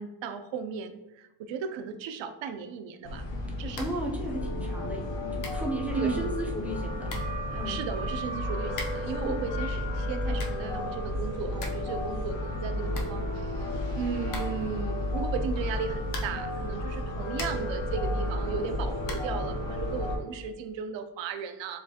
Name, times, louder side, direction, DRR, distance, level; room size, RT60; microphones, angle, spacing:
voice 1, 0.0-3.3 3.6-3.9 5.9-6.3 7.5-21.8, right 6 dB, 85° right, 8 dB, 0.5 m, -36 dB
sound 1, 3.0-20.2, left 1 dB, 85° left, 1.0 m, -32 dB
Catching apple, 3.7-4.1 4.4-4.5 5.1-5.2 5.4-5.7 6.7-6.8 7.1-7.4 8.7-9.2 10.1-10.7 11.1-11.2 11.4-11.9 12.2-12.3 12.6-12.7 12.9-13.7 14.3-14.8 16.0-16.5 17.0-17.8 19.0-19.4, left 3 dB, 45° left, 0.6 m, -41 dB
voice 2, 3.8-7.1 7.5-7.8 9.2-9.4, equal, 5° right, -2 dB, 0.4 m, -35 dB
7.0 x 2.4 x 2.7 m, 0.96 s
wide cardioid pair, 175°, 44 cm